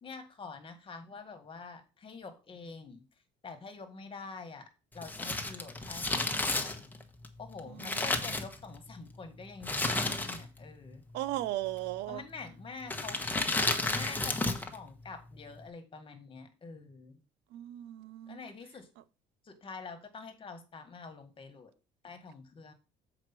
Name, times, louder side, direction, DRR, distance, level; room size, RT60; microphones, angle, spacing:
voice 1, 0.0-3.0 3.4-4.7 4.9-6.9 7.4-11.0 12.1-13.4 13.9-17.2 18.3-18.9 19.4-21.7 22.0-22.7, left 4 dB, 30° left, 1.8 m, -46 dB
Crumpling crinkling, 5.0-9.0 9.6-10.7 10.9-11.0 11.8-12.2 12.8-14.8 15.0-15.1, left 2 dB, 10° left, 1.2 m, -32 dB
voice 2, 7.7-8.0 11.1-12.2 17.5-18.4, right 15 dB, 90° right, 0.6 m, -36 dB
7.4 x 4.9 x 6.1 m
cardioid pair, 110°, 17 cm